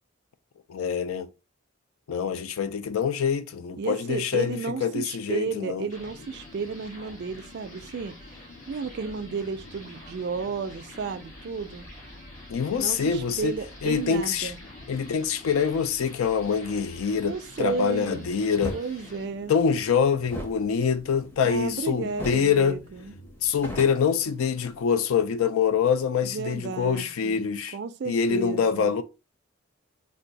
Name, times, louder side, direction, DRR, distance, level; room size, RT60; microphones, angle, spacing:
voice 1, 0.7-1.3 2.1-5.9 12.5-13.5 13.8-14.5 14.9-18.7 19.5-22.8 23.4-27.8 28.1-29.0, left 6 dB, 80° left, 0.4 m, -25 dB
voice 2, 3.8-8.2 8.7-11.9 12.8-14.6 17.2-18.3 18.7-19.5 21.4-23.1 26.2-28.9, right 5 dB, 50° right, 0.3 m, -33 dB
sound 1, 5.9-23.6, left 2 dB, 55° left, 0.8 m, -49 dB
sound 2, 5.9-19.2, left 1 dB, 35° left, 1.6 m, -49 dB
sound 3, 18.6-18.8 20.2-21.8 22.2-22.5 22.8-22.9 23.3-24.8, equal, 10° left, 0.6 m, -37 dB
2.6 x 2.2 x 3.8 m
head